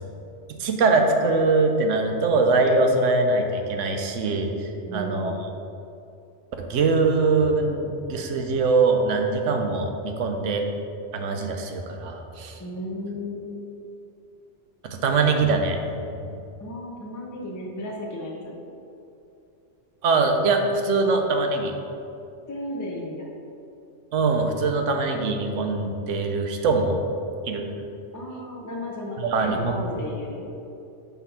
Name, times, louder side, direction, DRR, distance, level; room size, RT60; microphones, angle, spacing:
voice 1, 0.6-5.3 6.6-10.6 11.1-12.6 14.8-15.8 20.0-21.7 24.1-27.0 27.4-27.6 29.2-29.8, right 3 dB, 85° right, 4 dB, 1.0 m, -22 dB
voice 2, 4.8-5.3 12.6-13.6 16.6-18.6 22.5-23.3 28.1-30.5, left 1 dB, 20° left, -3 dB, 0.5 m, -34 dB
5.8 x 3.5 x 5.7 m, 2.7 s
omnidirectional pair, 1.2 m